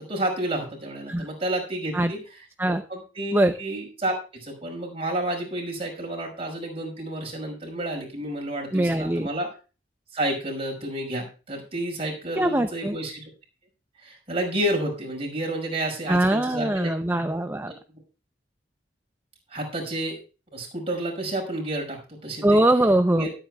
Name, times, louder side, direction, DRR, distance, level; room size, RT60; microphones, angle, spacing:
voice 1, 0.1-2.2 2.9-9.5 10.1-13.2 14.0-16.9 17.6-17.8 19.5-20.2 20.5-22.6 23.1-23.3, right 1 dB, 35° right, 1 dB, 5.5 m, -30 dB
voice 2, 8.7-9.3 12.4-13.0 16.1-17.7 22.4-23.3, right 1 dB, 10° right, 7 dB, 0.6 m, -22 dB
24.0 x 8.9 x 2.4 m, 0.33 s
head